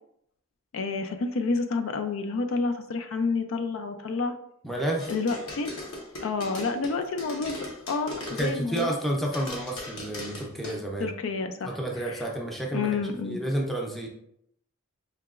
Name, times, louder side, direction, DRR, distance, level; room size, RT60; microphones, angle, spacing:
voice 1, 0.7-4.3 5.1-5.7 6.2-9.0 11.0-11.8 12.1-12.2 12.7-13.4, left 4 dB, 65° left, 7 dB, 0.4 m, -29 dB
voice 2, 4.6-5.1 8.3-11.1 11.6-14.1, right 1 dB, ahead, -1 dB, 0.6 m, -30 dB
sound 1, 5.0-9.0 9.3-10.8, left 2 dB, 85° left, 0.9 m, -38 dB
4.6 x 2.8 x 2.4 m, 0.72 s
head